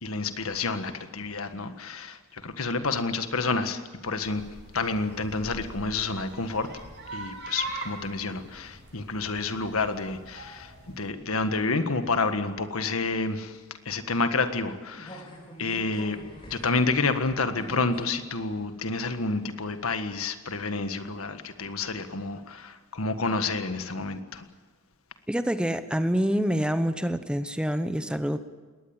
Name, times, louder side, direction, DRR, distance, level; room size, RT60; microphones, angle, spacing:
voice 1, 0.0-4.4 4.7-6.7 7.1-13.6 13.8-15.3 15.6-16.2 16.5-24.4, left 3 dB, 90° left, 9 dB, 1.6 m, -29 dB
sound 1, 4.2-11.1, right 3 dB, 55° right, 6.4 m, -42 dB
sound 2, 14.9-18.0 18.5-18.6, equal, 25° left, 5.1 m, -45 dB
voice 2, 25.3-28.4, equal, 5° right, 10 dB, 0.9 m, -26 dB
20.5 x 19.0 x 8.9 m, 1.3 s
head